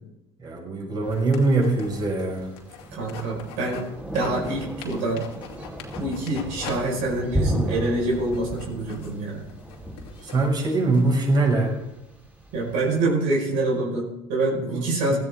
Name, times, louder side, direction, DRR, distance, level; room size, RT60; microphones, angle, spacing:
voice 1, 0.4-2.5 10.2-11.7 14.6-15.2, right 2 dB, 35° right, -1 dB, 5.9 m, -23 dB
Thunder, 1.0-13.0, right 1 dB, 10° right, 4.1 m, -34 dB
sound 1, 1.1-3.9 4.2-6.8 7.1-7.2 7.6-11.2, left 8 dB, 90° left, 2.4 m, -43 dB
voice 2, 2.9-3.9 4.1-5.2 6.0-9.4 12.5-15.2, right 2 dB, 75° right, -2 dB, 5.1 m, -26 dB
17.0 x 13.0 x 3.7 m, 0.91 s
supercardioid pair, 90°, 13 cm